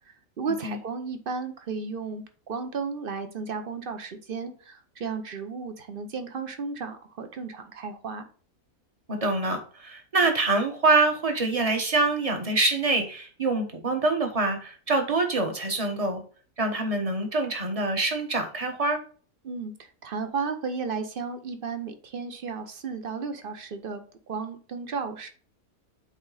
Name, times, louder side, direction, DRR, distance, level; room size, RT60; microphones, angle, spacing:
voice 1, 0.1-8.3 19.4-24.0 24.3-25.3, right 5 dB, 45° right, 8 dB, 0.9 m, -34 dB
voice 2, 9.1-16.2 16.6-19.0, right 2 dB, 25° right, 5 dB, 1.2 m, -25 dB
8.1 x 3.7 x 4.0 m, 0.41 s
omnidirectional pair, 1.5 m